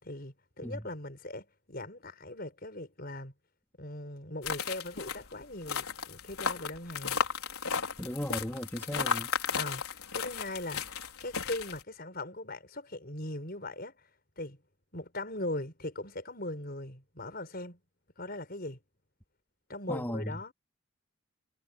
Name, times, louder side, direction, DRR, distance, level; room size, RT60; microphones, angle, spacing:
voice 1, 0.0-3.3 3.8-7.2 9.5-14.0 14.4-14.6 14.9-17.8 18.2-18.8 19.7-20.5, left 1 dB, 45° left, 5.3 m, -40 dB
sound 1, 4.4-11.8, left 6 dB, 85° left, 4.9 m, -34 dB
voice 2, 8.0-9.3 19.9-20.4, equal, 10° left, 2.7 m, -36 dB
head